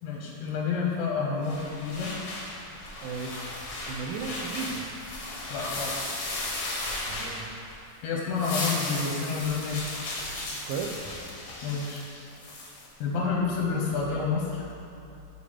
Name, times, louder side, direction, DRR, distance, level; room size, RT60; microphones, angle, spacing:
voice 1, 0.0-2.1 5.5-6.0 8.0-9.8 11.6-12.1 13.0-14.7, left 5 dB, 90° left, -2 dB, 2.3 m, -29 dB
sound 1, 1.4-7.8 8.2-12.9, left 2 dB, 70° left, 1.2 m, -36 dB
voice 2, 3.0-3.4 3.9-4.8 7.1-7.5 10.5-11.0, right 5 dB, 80° right, 3 dB, 1.9 m, -35 dB
5.6 x 4.1 x 4.9 m, 2.8 s
omnidirectional pair, 3.7 m